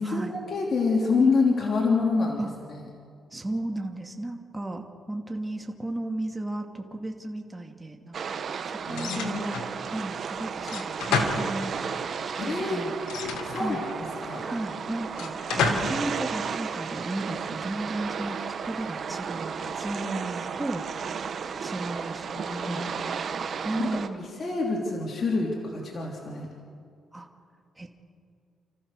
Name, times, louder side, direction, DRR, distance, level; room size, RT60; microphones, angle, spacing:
voice 1, 0.0-2.8 8.8-9.5 12.4-12.8 13.4-14.4 15.8-15.9 22.3-23.2 23.8-26.5, left 4 dB, 45° left, -1 dB, 3.3 m, -27 dB
voice 2, 3.3-12.0 12.4-12.9 13.5-13.8 14.4-22.3 22.6-24.3 27.1-27.3 27.8-27.9, right 1 dB, 15° right, 3 dB, 2.6 m, -35 dB
sound 1, 8.1-24.1, right 6 dB, 50° right, 1.3 m, -34 dB
sound 2, 8.9-9.7 10.6-12.0 13.0-14.1 15.1-16.0, left 4 dB, 80° left, 2.5 m, -30 dB
30.0 x 14.5 x 6.7 m, 2.4 s
cardioid pair, 90°, 0 cm